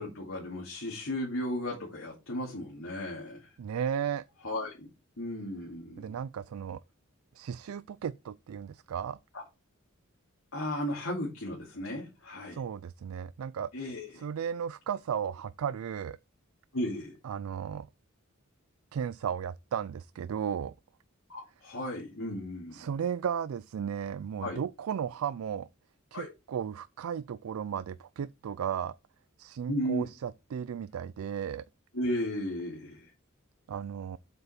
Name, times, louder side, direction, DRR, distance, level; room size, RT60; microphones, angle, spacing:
voice 1, 0.0-3.5 4.4-4.9 5.2-6.2 9.3-9.4 10.5-12.6 13.7-14.2 16.7-17.2 21.3-22.9 24.4-24.6 26.1-26.3 29.7-30.0 31.9-33.1, left 1 dB, 70° left, 2.4 m, -35 dB
voice 2, 3.6-4.2 6.0-6.8 7.3-9.2 12.5-13.7 14.2-16.2 17.2-17.9 18.9-20.7 22.7-25.7 26.1-28.9 29.4-31.6 33.7-34.2, right 8 dB, 80° right, 0.3 m, -35 dB
7.7 x 5.6 x 4.3 m
head